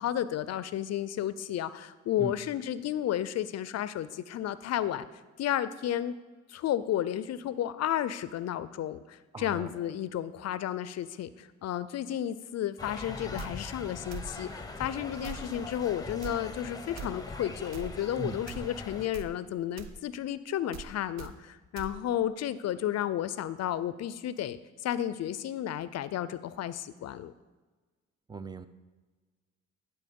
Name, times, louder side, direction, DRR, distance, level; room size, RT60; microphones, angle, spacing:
voice 1, 0.0-5.1 5.4-6.2 6.5-27.3, left 11 dB, 60° left, 15 dB, 0.5 m, -32 dB
voice 2, 9.3-9.7 18.2-18.4 28.3-28.7, right 4 dB, 15° right, 12 dB, 0.4 m, -38 dB
sound 1, 12.8-19.1, left 3 dB, 10° left, 0.8 m, -42 dB
sound 2, 13.4-13.5 14.1-14.3 15.2-15.5 16.2-16.4 17.0-17.1 17.7-17.9 18.5-18.7 19.1-19.3 19.8-19.9 20.7-20.9 21.2-21.3 21.8-21.9, right 6 dB, 65° right, 0.7 m, -41 dB
10.5 x 4.2 x 5.3 m, 1.3 s
cardioid pair, 90°, 30 cm